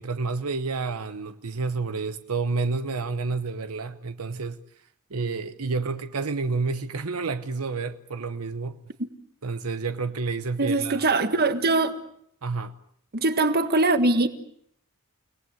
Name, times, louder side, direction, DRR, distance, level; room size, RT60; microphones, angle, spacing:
voice 1, 0.0-4.6 5.1-8.8 9.4-11.1 12.4-12.7, right 4 dB, 80° right, 1.0 m, -29 dB
voice 2, 10.6-12.0 13.1-14.3, right 2 dB, 45° right, 1.7 m, -22 dB
30.0 x 19.0 x 7.9 m
head